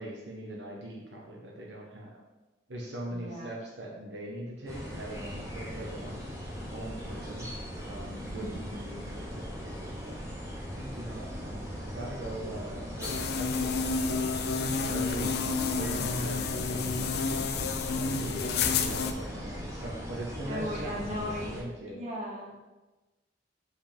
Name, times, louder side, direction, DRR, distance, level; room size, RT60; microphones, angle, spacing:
voice 1, 0.0-2.1 2.7-6.2 6.6-7.5 7.8-10.2 10.8-17.4 17.9-22.0, right 1 dB, 80° right, -2 dB, 1.1 m, -41 dB
voice 2, 3.1-3.5 8.2-8.6 15.0-15.3 20.4-21.6 21.9-22.6, equal, 40° right, -4 dB, 1.8 m, -37 dB
sound 1, 4.7-21.6, equal, 15° right, 1.1 m, -39 dB
sound 2, 13.0-19.1, left 5 dB, 60° left, 0.5 m, -30 dB
8.1 x 5.1 x 3.4 m, 1.1 s
head